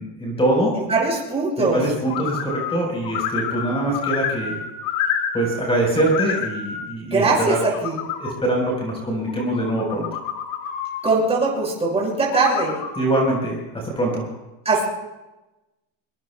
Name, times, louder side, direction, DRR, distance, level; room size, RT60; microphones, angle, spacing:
voice 1, 0.0-0.7 1.6-4.6 5.3-7.6 8.2-10.1 13.0-14.3, right 1 dB, 15° left, -1 dB, 4.5 m, -23 dB
voice 2, 0.8-1.8 7.1-8.0 11.0-12.7 14.6-14.9, right 3 dB, 15° right, -3 dB, 6.3 m, -21 dB
sound 1, 2.1-2.8 3.0-5.7 5.9-6.8 7.4-8.3 9.3-11.1 12.2-13.4, left 8 dB, 75° left, 2.6 m, -28 dB
24.0 x 23.5 x 2.3 m, 1.0 s
cardioid pair, 165°, 44 cm